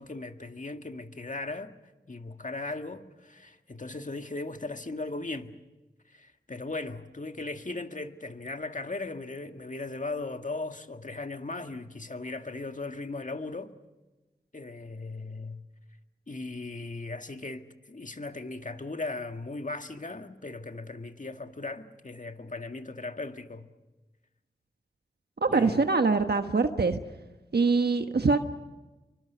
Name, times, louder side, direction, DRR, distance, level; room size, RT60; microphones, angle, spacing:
voice 1, 0.0-1.7 2.1-5.5 6.1-13.7 14.5-15.6 16.3-23.7 25.5-25.9, left 3 dB, 45° left, 1.8 m, -38 dB
voice 2, 25.4-27.0 27.5-28.4, right 4 dB, 65° right, 1.2 m, -24 dB
27.5 x 24.5 x 6.8 m
cardioid pair, 40°, 18 cm